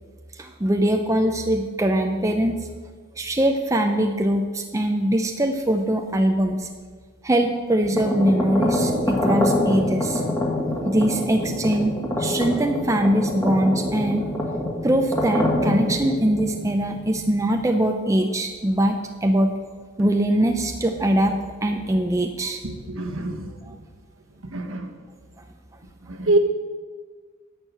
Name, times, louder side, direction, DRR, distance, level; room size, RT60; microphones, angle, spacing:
voice 1, 0.3-2.6 3.2-6.7 7.2-10.2 10.8-14.3 14.8-19.5 20.0-22.6 23.6-23.7, right 1 dB, 15° right, 5 dB, 0.5 m, -22 dB
sound 1, 7.8-17.6, left 1 dB, 15° left, 1.7 m, -25 dB
voice 2, 22.6-23.8 24.5-24.9 26.1-26.4, right 2 dB, 65° right, 6 dB, 1.2 m, -25 dB
11.0 x 6.7 x 7.7 m, 1.5 s
head